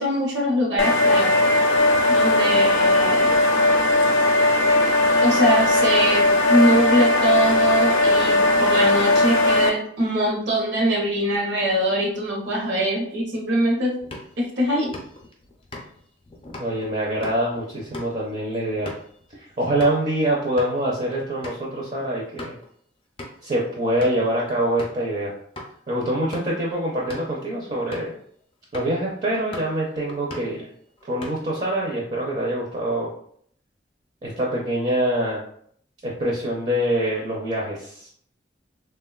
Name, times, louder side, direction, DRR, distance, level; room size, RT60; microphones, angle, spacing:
voice 1, 0.0-1.3 2.1-3.5 5.2-13.9 14.4-14.9, right 1 dB, 75° right, -2 dB, 0.7 m, -23 dB
sound 1, 0.8-9.7, left 2 dB, 90° left, 0.4 m, -18 dB
sound 2, 14.0-20.1 20.4-20.8 21.1-21.2 21.4-21.6 22.1-22.7 23.2-23.5 24.0-24.3 24.8-25.1 25.6-25.7 26.2-26.6 27.0-27.4 27.9-28.2 28.7-29.0 29.3-29.8 30.1-30.6 31.0-31.6, left 1 dB, 30° left, 0.4 m, -40 dB
voice 2, 16.6-18.9 19.3-22.6 23.4-25.3 25.9-28.1 28.7-30.7 31.0-33.1 34.2-35.4 36.0-38.1, right 1 dB, 40° right, -3 dB, 0.5 m, -25 dB
3.2 x 2.2 x 2.3 m, 0.63 s
head